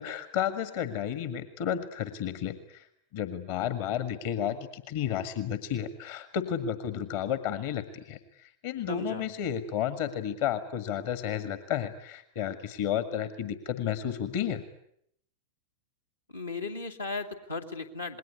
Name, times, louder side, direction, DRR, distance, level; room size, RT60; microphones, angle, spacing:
voice 1, 0.0-2.9 3.1-14.6, left 9 dB, 50° left, 11 dB, 1.7 m, -32 dB
voice 2, 8.9-9.3 16.3-18.2, left 3 dB, 80° left, 2 dB, 2.6 m, -36 dB
27.5 x 21.0 x 9.7 m, 0.73 s
figure-of-eight pair, 90°, 0 cm